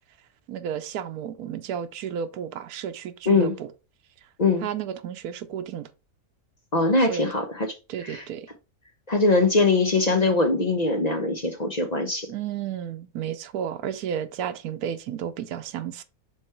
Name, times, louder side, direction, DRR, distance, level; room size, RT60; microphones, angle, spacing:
voice 1, 0.5-3.7 4.6-5.9 7.1-7.2 7.9-8.5 12.3-16.0, right 9 dB, 90° right, 1.2 m, -32 dB
voice 2, 6.7-7.8 8.0-8.2 9.1-12.3, left 3 dB, 35° left, 0.8 m, -22 dB
6.9 x 3.2 x 4.4 m
omnidirectional pair, 1.6 m